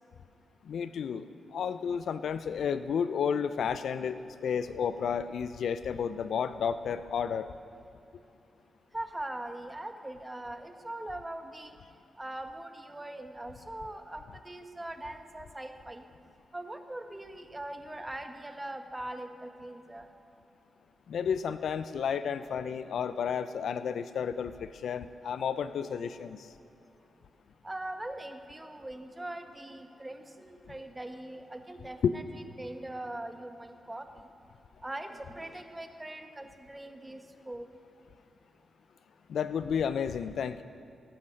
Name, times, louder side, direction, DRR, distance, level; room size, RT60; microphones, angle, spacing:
voice 1, 0.6-1.2 1.5-7.5 21.1-26.5 39.3-40.6, left 7 dB, 70° left, 13 dB, 0.4 m, -32 dB
voice 2, 8.9-11.8 12.2-16.0 16.5-20.1 27.6-32.2 32.6-34.2 34.8-37.7, right 1 dB, 20° right, 6 dB, 1.4 m, -41 dB
17.0 x 8.6 x 6.4 m, 2.8 s
supercardioid pair, 40°, 0 cm